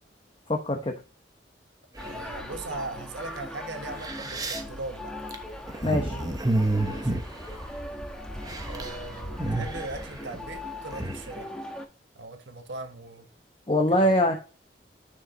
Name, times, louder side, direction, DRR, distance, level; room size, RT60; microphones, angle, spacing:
voice 1, 0.5-0.9 5.8-6.2 13.7-14.3, left 1 dB, 30° left, 0.9 m, -23 dB
sound 1, 2.0-11.8, left 1 dB, 5° left, 1.1 m, -39 dB
sound 2, 2.0-2.6 3.4-3.5 3.8-8.1 8.3-9.0 9.2-11.3, right 2 dB, 20° right, 1.1 m, -30 dB
voice 2, 2.0-5.1 6.9-7.2 8.6-11.5 12.1-13.3 13.9-14.3, right 2 dB, 90° right, 1.5 m, -39 dB
9.7 x 5.0 x 3.9 m
head